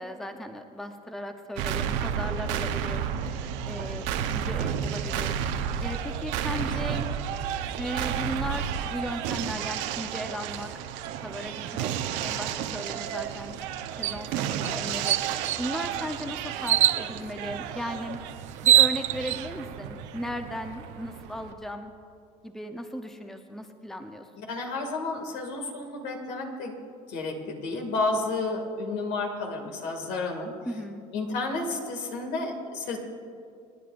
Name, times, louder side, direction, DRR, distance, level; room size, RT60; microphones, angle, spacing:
voice 1, 0.0-7.1 7.8-10.7 11.2-11.9 12.2-13.6 14.0-18.2 18.6-21.9 22.4-24.3 30.7-31.0, equal, ahead, 6 dB, 0.8 m, -37 dB
sound 1, 1.6-21.5, right 9 dB, 65° right, 0.9 m, -32 dB
sound 2, 14.0-14.2 14.6-14.7 15.1-15.7 16.7-17.0 18.1-18.2 18.5-19.4, right 12 dB, 40° right, 0.4 m, -21 dB
voice 2, 24.5-26.7 27.1-30.5 31.1-33.0, left 3 dB, 65° left, 3 dB, 2.3 m, -31 dB
26.5 x 10.0 x 2.6 m, 2.3 s
hypercardioid pair, 85°, 19 cm